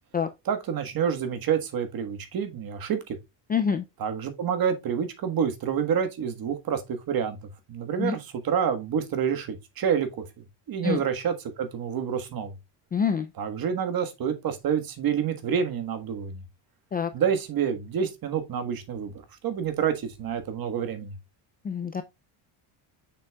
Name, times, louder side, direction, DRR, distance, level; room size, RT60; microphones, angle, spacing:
voice 1, 0.4-3.0 4.0-6.8 7.1-7.4 7.7-10.1 10.7-12.5 13.4-16.4 17.1-19.1 19.4-21.1, right 7 dB, 45° right, 1.5 m, -28 dB
voice 2, 3.5-3.8 8.0-8.2 10.8-11.0 12.9-13.3 16.9-17.1 21.6-22.0, left 6 dB, 20° left, 0.3 m, -26 dB
6.7 x 6.1 x 2.3 m
cardioid pair, 135°, 50 cm